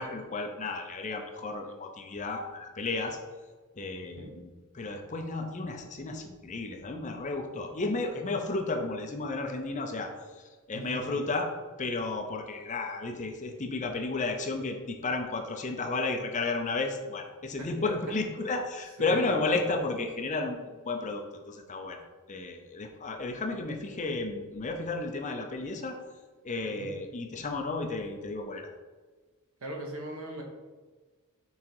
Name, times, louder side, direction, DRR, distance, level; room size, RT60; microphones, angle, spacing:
voice 1, 0.0-3.2 3.8-11.5 11.8-22.0 22.3-26.0 26.4-28.7, left 3 dB, 35° left, 3 dB, 0.6 m, -33 dB
voice 2, 10.7-11.2 17.6-17.7 19.0-19.6 26.6-26.9 29.6-30.4, right 1 dB, 70° right, 1 dB, 1.2 m, -40 dB
5.6 x 3.7 x 4.5 m, 1.4 s
head